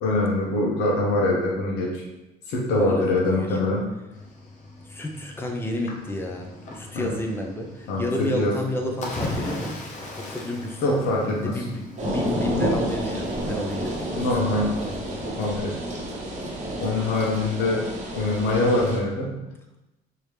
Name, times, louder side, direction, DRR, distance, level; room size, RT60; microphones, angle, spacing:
voice 1, 0.0-2.0 2.5-3.9 6.9-7.1 7.9-8.5 10.8-11.6 14.2-14.7 15.4-15.7 16.8-17.8 18.1-19.3, left 2 dB, 80° left, -3 dB, 0.9 m, -23 dB
voice 2, 2.7-3.5 4.9-9.8 10.3-10.8 11.4-15.0, left 1 dB, 15° left, 2 dB, 0.5 m, -31 dB
Cricket / Waves surf, 4.1-15.3, left 2 dB, 45° left, 0.7 m, -39 dB
sound 1, 12.0-19.0, right 1 dB, 45° right, 0.9 m, -30 dB
3.2 x 2.8 x 3.3 m, 0.98 s
cardioid pair, 110°, 17 cm